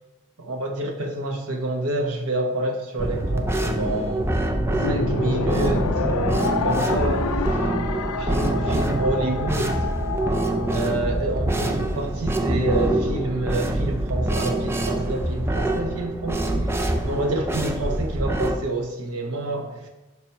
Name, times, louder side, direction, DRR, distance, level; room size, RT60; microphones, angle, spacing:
voice 1, 0.4-4.3 4.9-7.3 8.3-9.9 10.7-16.5 17.0-19.9, right 2 dB, 85° right, 3 dB, 1.0 m, -28 dB
sound 1, 3.0-18.6, right 1 dB, 10° right, 0.3 m, -25 dB
sound 2, 4.7-11.2, left 4 dB, 80° left, 0.4 m, -28 dB
5.8 x 4.3 x 4.5 m, 1.1 s
head